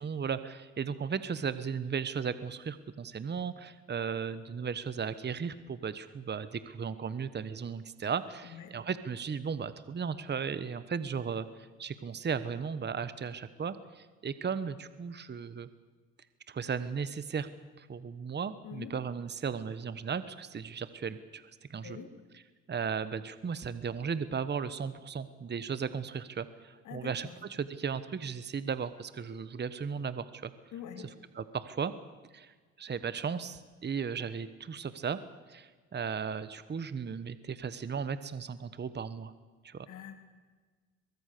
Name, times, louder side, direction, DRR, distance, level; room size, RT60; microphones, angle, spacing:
voice 1, 0.0-15.7 16.5-17.5 17.8-22.0 22.7-30.5 31.3-31.9 32.3-35.2 35.5-39.3 39.6-39.9, right 6 dB, 35° right, 13 dB, 1.2 m, -36 dB
voice 2, 8.4-8.8 18.6-18.9 21.8-22.1 26.8-27.4 30.7-31.1 39.9-40.1, left 9 dB, 85° left, 6 dB, 3.5 m, -44 dB
23.0 x 22.0 x 6.8 m, 1.4 s
cardioid pair, 90°, 30 cm